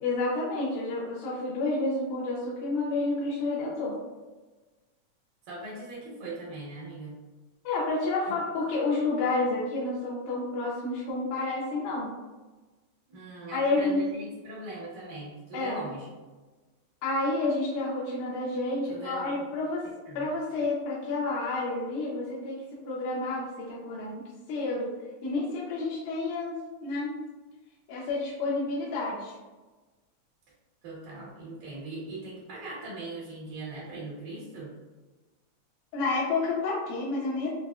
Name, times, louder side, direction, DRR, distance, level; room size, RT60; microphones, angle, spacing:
voice 1, 0.0-4.0 7.6-12.1 13.5-14.1 15.5-15.8 17.0-19.9 20.2-24.9 25.2-27.2 27.9-29.3 35.9-37.5, left 2 dB, 90° left, -6 dB, 2.2 m, -30 dB
voice 2, 5.5-7.2 13.1-16.1 18.9-19.3 20.1-20.3 30.8-34.7, right 2 dB, 80° right, -7 dB, 2.4 m, -40 dB
5.6 x 2.0 x 2.3 m, 1.2 s
omnidirectional pair, 3.5 m